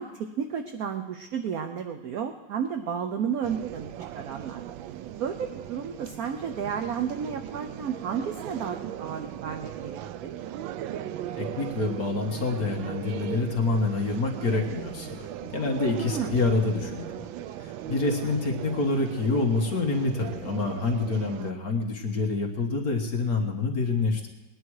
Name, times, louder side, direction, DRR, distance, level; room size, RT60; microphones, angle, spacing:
voice 1, 0.0-4.6 5.2-10.3 16.1-16.4, right 7 dB, 60° right, 6 dB, 1.1 m, -32 dB
sound 1, 3.4-21.5, right 11 dB, 90° right, 1.4 m, -38 dB
voice 2, 11.4-15.3 15.5-17.2 17.6-24.3, left 3 dB, 50° left, 2 dB, 1.8 m, -27 dB
20.0 x 10.0 x 4.7 m, 1.1 s
omnidirectional pair, 2.0 m